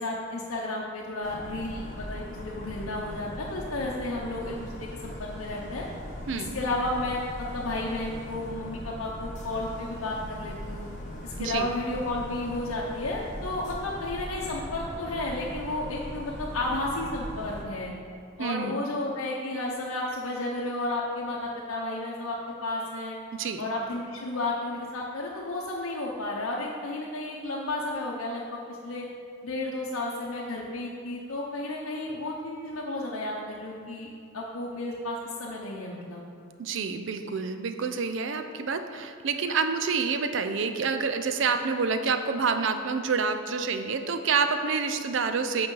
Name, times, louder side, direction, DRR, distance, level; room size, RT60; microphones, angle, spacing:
voice 1, 0.0-5.9 6.3-10.9 11.2-17.9 18.4-23.2 23.6-29.1 29.4-34.1 34.3-36.2, left 2 dB, 80° left, -3 dB, 0.8 m, -32 dB
sound 1, 1.2-17.7, equal, 35° left, 0.9 m, -40 dB
voice 2, 6.3-6.6 11.4-11.7 18.4-18.7 23.3-23.7 36.6-45.7, right 5 dB, 60° right, 8 dB, 0.4 m, -28 dB
8.0 x 5.4 x 3.9 m, 2.3 s
head